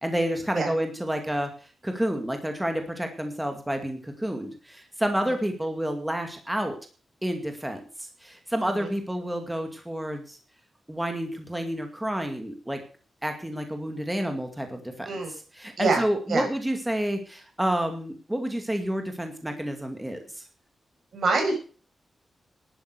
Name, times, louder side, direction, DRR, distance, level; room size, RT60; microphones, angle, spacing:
voice 1, 0.0-1.5 1.8-6.8 7.2-10.4 10.9-12.8 13.2-15.1 15.5-20.4, equal, 5° right, 5 dB, 2.3 m, -29 dB
voice 2, 21.1-21.6, right 3 dB, 70° right, 3 dB, 6.1 m, -25 dB
12.0 x 9.4 x 6.7 m, 0.39 s
wide cardioid pair, 115°, 0 cm